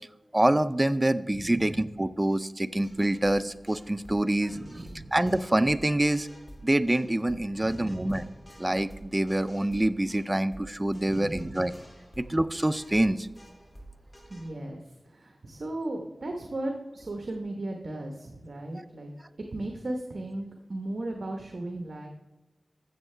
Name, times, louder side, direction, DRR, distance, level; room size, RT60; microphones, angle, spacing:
voice 1, 0.3-4.6 5.1-6.3 6.6-8.3 8.6-11.7 12.2-13.3 18.7-18.8, right 1 dB, 20° right, 13 dB, 0.5 m, -26 dB
voice 2, 1.3-1.7 4.5-5.1 7.5-8.2 11.1-11.6 14.3-14.8 15.1-19.1 19.5-22.1, right 1 dB, 65° right, 2 dB, 1.1 m, -36 dB
sound 1, 2.7-14.5, right 1 dB, 20° left, 2.6 m, -50 dB
14.0 x 7.3 x 3.3 m, 1.1 s
wide cardioid pair, 60°, 0 cm